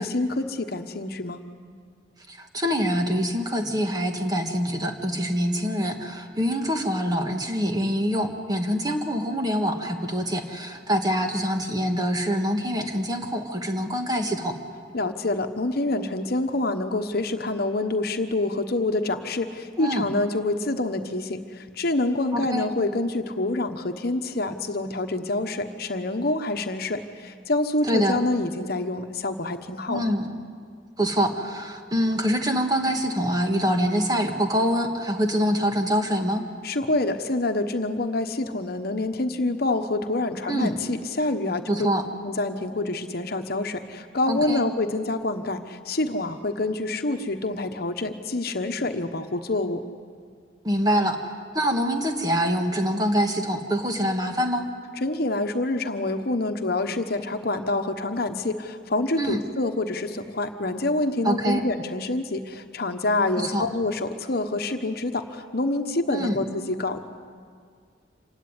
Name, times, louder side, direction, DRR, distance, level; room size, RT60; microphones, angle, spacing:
voice 1, 0.0-1.4 14.9-30.0 36.6-41.8 42.2-49.8 55.0-67.0, left 2 dB, 55° left, 7 dB, 1.2 m, -27 dB
voice 2, 2.3-14.6 19.8-20.1 22.3-22.7 27.8-28.2 29.9-30.4 31.0-36.4 40.5-40.7 41.7-42.0 44.3-44.6 50.6-54.7 59.2-59.4 61.2-61.6 63.4-63.7 66.1-66.4, equal, 20° right, 4 dB, 1.8 m, -25 dB
27.0 x 16.5 x 9.8 m, 2.1 s
head